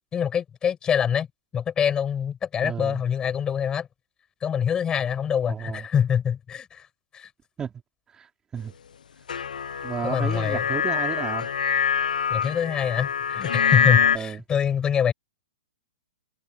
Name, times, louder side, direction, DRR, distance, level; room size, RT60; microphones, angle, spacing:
voice 1, 0.1-1.3 1.5-3.9 4.4-6.9 7.1-7.3 10.0-10.6 12.3-15.1, left 8 dB, 20° left, 5.9 m, -25 dB
voice 2, 2.6-3.0 5.5-5.8 7.6-7.7 8.1-8.7 9.8-11.5 14.1-14.4, right 7 dB, 15° right, 4.1 m, -32 dB
sound 1, 9.3-14.2, left 7 dB, 85° left, 0.5 m, -24 dB
hypercardioid pair, 135°, 4 cm